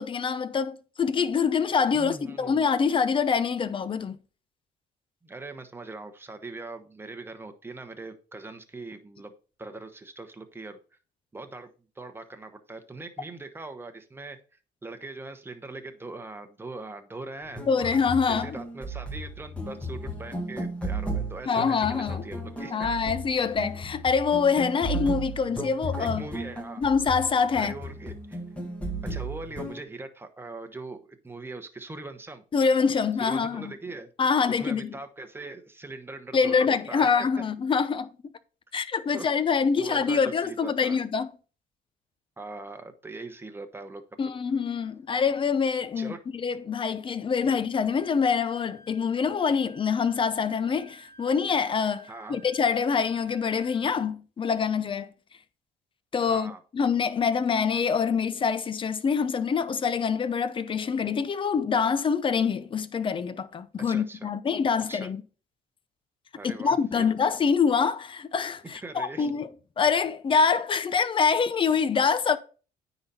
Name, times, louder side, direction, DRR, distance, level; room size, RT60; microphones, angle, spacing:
voice 1, 0.0-4.2 17.7-18.5 21.5-22.2 22.7-26.2 26.8-27.7 32.5-33.7 34.2-35.0 36.3-38.1 38.7-41.3 44.2-55.1 56.1-65.2 66.4-69.5 69.8-72.4, left 6 dB, 30° left, 0.6 m, -25 dB
voice 2, 1.9-2.6 5.2-10.8 11.3-11.7 12.0-14.4 14.8-17.9 18.2-22.9 26.0-26.8 27.6-28.4 29.1-32.4 33.2-34.1 34.5-37.1 39.1-39.3 39.8-41.0 42.4-44.0 46.0-46.2 47.4-47.5 52.1-52.4 56.2-56.6 63.8-64.3 64.9-65.1 66.3-67.1 68.8-69.3, right 3 dB, 15° right, 1.0 m, -41 dB
sound 1, 17.4-29.8, right 1 dB, 5° left, 1.5 m, -35 dB
Wind instrument woodwind instrument, 47.9-54.1, right 1 dB, 75° left, 1.6 m, -54 dB
9.5 x 4.1 x 4.2 m
cardioid pair, 110°, 17 cm